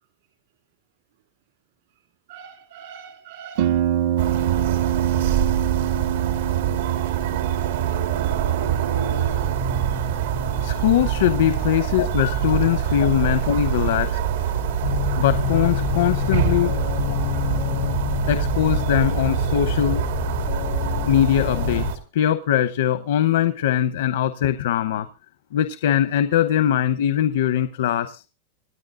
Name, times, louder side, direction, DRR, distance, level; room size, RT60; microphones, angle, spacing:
voice 1, 2.3-3.8 11.7-11.8 12.7-12.8 13.2-13.3, right 8 dB, 70° right, 3.1 m, -43 dB
Harp, 3.6-21.0, right 12 dB, 50° right, 0.6 m, -29 dB
sound 1, 4.2-22.0, right 9 dB, 85° right, 2.0 m, -25 dB
voice 2, 7.2-16.8 18.3-20.0 21.1-21.9 22.1-25.1 25.5-28.3, left 11 dB, 80° left, 0.9 m, -22 dB
sound 2, 14.8-21.9, left 15 dB, 50° left, 0.5 m, -27 dB
25.5 x 9.6 x 2.5 m
supercardioid pair, 170°, 0 cm